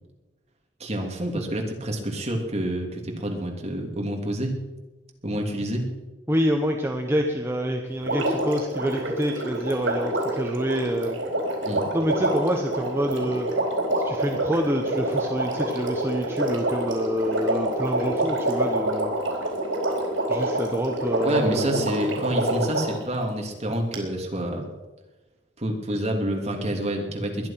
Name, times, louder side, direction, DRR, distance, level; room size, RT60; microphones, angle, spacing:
voice 1, 0.8-4.6 5.2-5.8 11.6-11.8 21.2-24.7 25.6-27.5, right 1 dB, 35° right, 1 dB, 3.0 m, -28 dB
voice 2, 6.3-11.2 11.9-13.5 14.0-19.1 20.3-21.9, equal, 15° right, 2 dB, 1.1 m, -27 dB
Water, 8.0-23.0 23.9-24.0, right 1 dB, 85° right, 4.4 m, -27 dB
21.0 x 11.5 x 5.9 m, 1.2 s
head